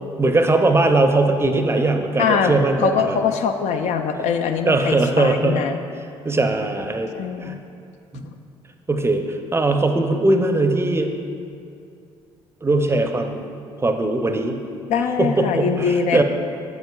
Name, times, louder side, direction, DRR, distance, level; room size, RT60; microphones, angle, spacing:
voice 1, 0.2-3.2 4.1-4.2 4.7-5.6 6.2-7.1 7.4-7.6 8.1-8.2 8.9-11.2 12.6-13.5 13.8-14.6 15.1-16.2, right 2 dB, 20° right, 5 dB, 0.6 m, -20 dB
voice 2, 2.2-2.5 2.8-5.8 7.1-7.6 14.9-16.2, left 6 dB, 60° left, 6 dB, 0.4 m, -22 dB
7.6 x 7.1 x 2.3 m, 2.5 s
hypercardioid pair, 55°, 13 cm